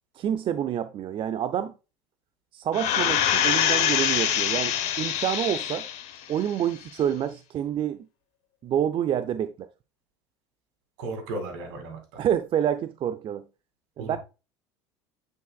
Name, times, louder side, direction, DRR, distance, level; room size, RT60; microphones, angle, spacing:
voice 1, 0.1-1.7 2.5-5.9 6.3-8.1 8.6-9.7 12.2-13.5 14.0-14.2, right 10 dB, 40° right, 0.5 m, -28 dB
sound 1, 2.7-6.1 6.6-6.7, left 9 dB, 60° left, 1.1 m, -24 dB
voice 2, 11.0-12.2 14.0-14.2, right 2 dB, 70° right, 2.3 m, -35 dB
9.0 x 4.8 x 2.3 m
hypercardioid pair, 75°, 14 cm